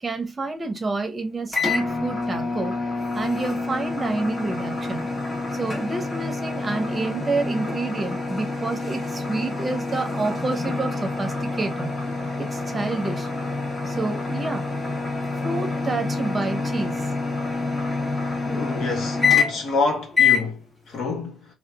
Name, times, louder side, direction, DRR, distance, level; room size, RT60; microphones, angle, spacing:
voice 1, 0.0-2.8 3.1-5.0 5.5-11.9 12.4-13.3 13.9-14.6 15.4-17.1, right 3 dB, 30° right, 0.8 m, -28 dB
sound 1, 1.5-19.8 20.1-20.5, left 4 dB, 35° left, 1.5 m, -26 dB
voice 2, 18.4-21.5, left 3 dB, 70° left, 1.3 m, -28 dB
2.8 x 2.3 x 2.3 m
cardioid pair, 90°, 0 cm